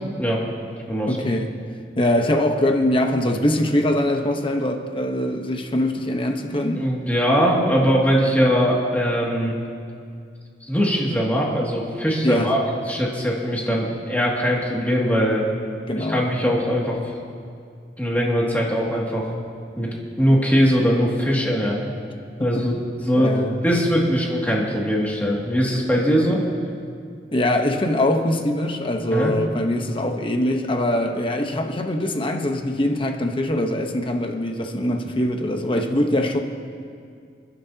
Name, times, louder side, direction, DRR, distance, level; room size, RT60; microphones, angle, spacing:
voice 1, 1.1-1.5 2.0-6.8 12.2-12.5 15.9-16.2 22.4-22.6 23.2-23.6 27.3-36.4, left 1 dB, 30° left, 4 dB, 1.0 m, -22 dB
voice 2, 6.8-9.6 10.7-15.5 15.9-17.0 18.0-19.3 19.8-19.9 20.2-21.8 22.4-22.7 23.0-26.4 29.1-29.3, equal, 10° left, -4 dB, 2.3 m, -21 dB
28.5 x 11.0 x 2.8 m, 2.3 s
head